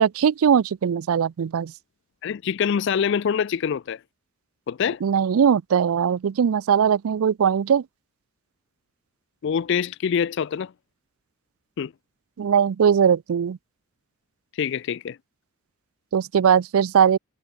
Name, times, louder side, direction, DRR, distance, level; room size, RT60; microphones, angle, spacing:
voice 1, 0.0-1.7 5.0-7.8 12.4-13.6 16.1-17.2, right 7 dB, 85° right, 0.4 m, -20 dB
voice 2, 2.2-4.0 4.7-5.0 9.4-10.7 11.8-11.9 14.6-15.2, left 7 dB, 55° left, 0.3 m, -25 dB
head